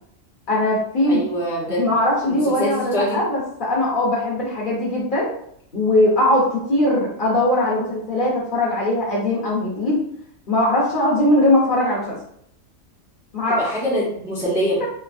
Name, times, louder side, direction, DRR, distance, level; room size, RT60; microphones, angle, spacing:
voice 1, 0.5-1.2 1.8-5.3 5.7-10.0 10.5-12.2 13.3-13.7 14.8-14.9, left 1 dB, 45° left, -5 dB, 0.9 m, -20 dB
voice 2, 1.1-1.9 2.3-3.2 13.6-14.9, equal, 5° right, -6 dB, 0.6 m, -24 dB
3.3 x 2.7 x 2.5 m, 0.69 s
omnidirectional pair, 1.4 m